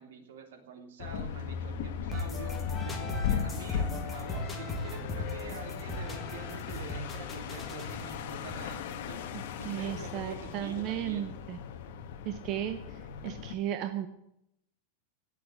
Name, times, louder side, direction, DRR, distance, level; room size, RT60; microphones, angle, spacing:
voice 1, 0.0-9.2 9.6-11.3, right 6 dB, 75° right, 6 dB, 3.0 m, -46 dB
sound 1, 1.0-13.5, left 7 dB, 50° left, 1.5 m, -37 dB
sound 2, 2.1-9.9, left 2 dB, 10° left, 1.7 m, -39 dB
voice 2, 9.6-11.6 12.2-12.8 13.2-14.1, right 11 dB, 30° right, 8 dB, 0.8 m, -34 dB
17.5 x 6.8 x 9.7 m, 0.80 s
supercardioid pair, 180°, 0 cm